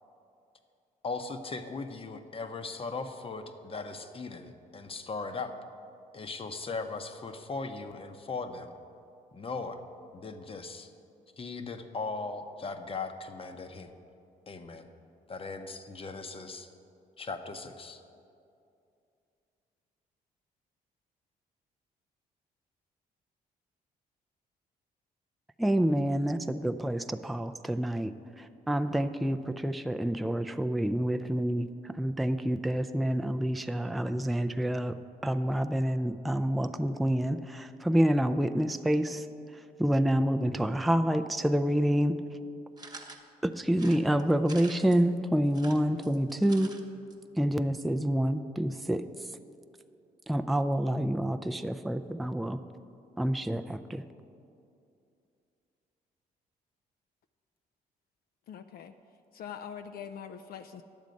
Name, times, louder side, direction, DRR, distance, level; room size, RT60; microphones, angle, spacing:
voice 1, 1.0-5.5 6.1-8.7 9.3-9.8 10.1-10.9 11.4-13.9 14.5-14.9 15.3-16.7 17.2-18.0, left 4 dB, 35° left, 8 dB, 0.8 m, -38 dB
voice 2, 25.6-35.0 35.2-39.3 39.8-42.2 43.4-46.7 47.4-49.0 50.3-52.6 53.2-54.0, equal, ahead, 8 dB, 0.4 m, -28 dB
sound 1, 42.8-43.2 43.7-45.0 45.5-46.8 47.1-47.2 47.4-47.5, right 3 dB, 25° right, 1.0 m, -47 dB
voice 3, 58.5-58.9 59.3-60.8, left 8 dB, 65° left, 8 dB, 0.4 m, -43 dB
10.5 x 7.3 x 5.2 m, 2.6 s
cardioid pair, 75°, 17 cm